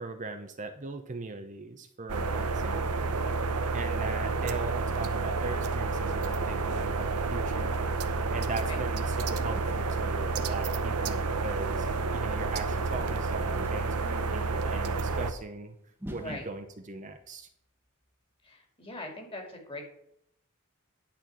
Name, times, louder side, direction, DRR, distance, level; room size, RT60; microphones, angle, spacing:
voice 1, 0.0-3.2 3.7-7.8 8.3-11.9 12.1-15.8 16.1-17.5, right 3 dB, 35° right, 6 dB, 0.8 m, -39 dB
sound 1, 2.1-15.3, right 4 dB, 85° right, 0.9 m, -30 dB
sound 2, 15.9-18.1, equal, 10° right, 1.1 m, -48 dB
voice 2, 16.2-16.5 18.4-19.8, left 2 dB, 25° left, 2 dB, 2.4 m, -41 dB
10.5 x 4.4 x 7.4 m, 0.74 s
head